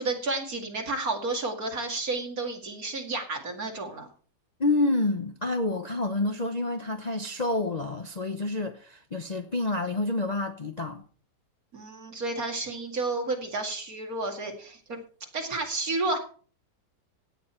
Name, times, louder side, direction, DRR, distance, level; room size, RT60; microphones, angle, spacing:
voice 1, 0.0-4.1 11.7-15.0 15.3-16.2, right 2 dB, 55° right, 2.7 m, -31 dB
voice 2, 4.6-11.0, left 2 dB, 35° left, 0.8 m, -28 dB
16.5 x 9.5 x 4.5 m
omnidirectional pair, 1.8 m